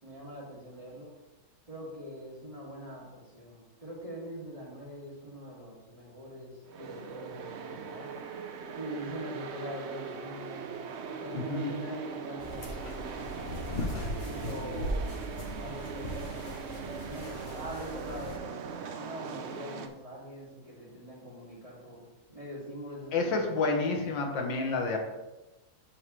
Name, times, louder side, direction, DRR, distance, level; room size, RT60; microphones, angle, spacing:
voice 1, 0.0-1.1 1.7-8.1 8.8-10.7 11.1-13.3 14.0-15.0 15.6-23.7, equal, 20° right, -6 dB, 2.4 m, -43 dB
sound 1, 6.6-19.9, right 6 dB, 90° right, 0.6 m, -40 dB
voice 2, 11.3-11.7 23.1-25.0, left 3 dB, 80° left, 3 dB, 1.8 m, -29 dB
sound 2, 12.4-18.4, left 1 dB, 40° left, 1.1 m, -38 dB
12.5 x 4.7 x 3.2 m, 1.1 s
omnidirectional pair, 2.0 m